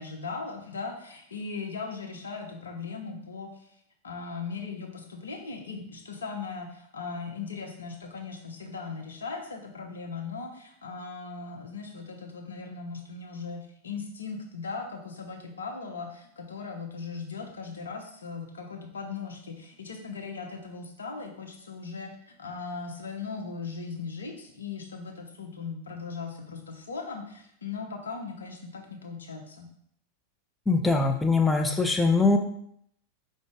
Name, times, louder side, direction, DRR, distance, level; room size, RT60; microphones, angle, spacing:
voice 1, 0.0-3.7 4.0-29.7, left 4 dB, 70° left, 2 dB, 0.7 m, -38 dB
voice 2, 30.7-32.4, left 3 dB, 10° left, 5 dB, 0.3 m, -22 dB
4.9 x 2.6 x 3.5 m, 0.70 s
figure-of-eight pair, 90°, 0 cm